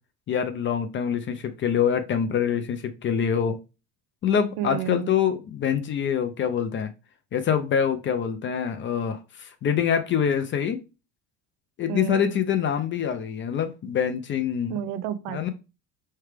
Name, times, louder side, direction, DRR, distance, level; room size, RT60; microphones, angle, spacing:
voice 1, 0.3-3.6 4.2-6.9 7.3-10.8 11.8-14.8 15.3-15.5, left 8 dB, 35° left, 0.5 m, -25 dB
voice 2, 4.6-5.1 11.9-12.4 14.7-15.5, right 10 dB, 85° right, 0.6 m, -31 dB
4.6 x 3.3 x 3.3 m
cardioid pair, 140°, 35 cm